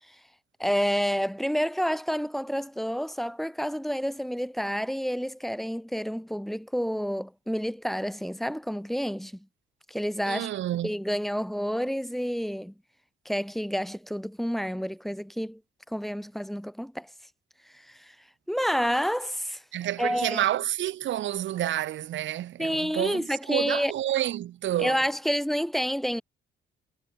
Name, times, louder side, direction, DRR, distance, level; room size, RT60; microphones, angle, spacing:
voice 1, 0.6-9.5 9.9-10.5 10.8-12.7 13.2-15.6 15.9-17.1 17.7-18.1 18.5-19.6 20.0-20.4 22.6-23.9 24.8-26.2, equal, ahead, 2.6 m, -29 dB
voice 2, 10.3-10.9 19.7-25.0, right 12 dB, 70° right, 1.1 m, -29 dB
cardioid pair, 90°, 20 cm